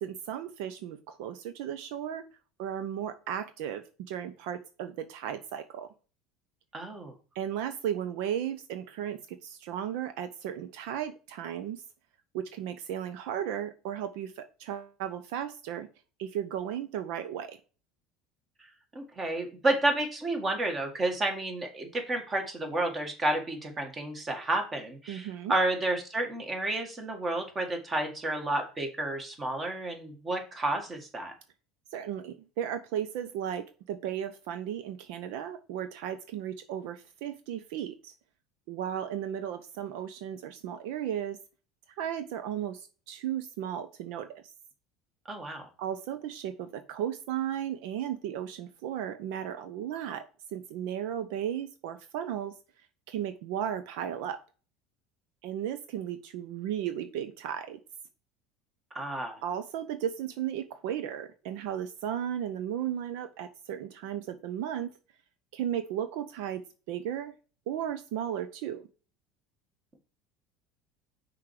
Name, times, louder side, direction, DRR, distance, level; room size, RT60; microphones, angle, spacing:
voice 1, 0.0-2.2 2.6-5.9 7.3-11.8 12.3-15.9 16.2-17.6 25.1-25.5 31.9-38.1 38.7-41.4 42.0-44.5 45.8-52.5 53.1-54.4 55.4-57.8 59.4-64.9 65.5-67.3 67.7-68.8, right 10 dB, 75° right, 10 dB, 0.6 m, -35 dB
voice 2, 6.7-7.1 18.9-31.3 45.3-45.7 58.9-59.4, right 2 dB, 25° right, 4 dB, 1.9 m, -31 dB
5.9 x 4.6 x 4.8 m, 0.36 s
supercardioid pair, 110°, 0 cm